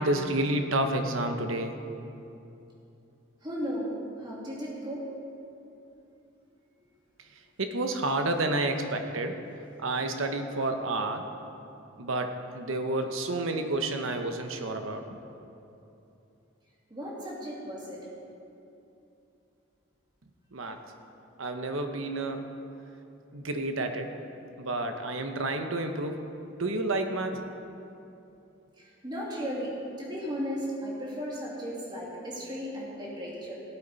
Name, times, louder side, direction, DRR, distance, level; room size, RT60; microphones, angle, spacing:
voice 1, 0.0-1.8 7.6-9.4 9.8-11.2 12.0-15.0 20.5-20.8 21.4-22.5 23.3-24.1 24.6-26.2 26.6-27.4, right 2 dB, 80° right, 6 dB, 1.0 m, -30 dB
voice 2, 3.4-5.0 16.9-18.1 28.8-29.7 30.0-33.5, equal, 20° right, -5 dB, 2.4 m, -35 dB
16.0 x 8.9 x 4.1 m, 2.8 s
head